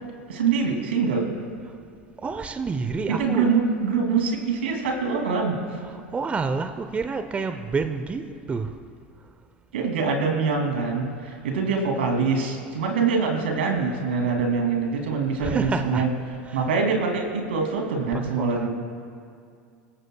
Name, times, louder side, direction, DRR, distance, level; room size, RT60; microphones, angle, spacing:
voice 1, 0.3-1.3 3.1-5.6 9.7-16.1 16.5-18.7, right 5 dB, 80° right, 2 dB, 2.7 m, -24 dB
voice 2, 2.2-3.5 5.8-8.8 15.4-16.0 16.4-16.7 18.1-18.7, right 4 dB, 20° right, 8 dB, 0.8 m, -29 dB
25.5 x 14.5 x 2.3 m, 2.3 s
hypercardioid pair, 85°, 6 cm